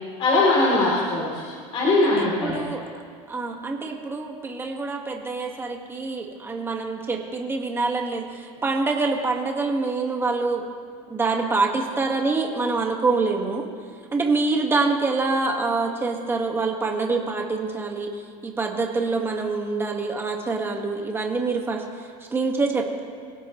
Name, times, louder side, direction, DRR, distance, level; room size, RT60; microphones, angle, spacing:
voice 1, 0.2-1.4 1.7-2.6, left 2 dB, 30° left, -6 dB, 3.5 m, -20 dB
voice 2, 2.0-2.8 3.3-10.6 11.1-13.7 14.1-18.1 18.4-21.8 22.3-23.0, right 3 dB, 15° right, 1 dB, 1.8 m, -25 dB
25.5 x 16.5 x 3.2 m, 2.1 s
supercardioid pair, 150°, 18 cm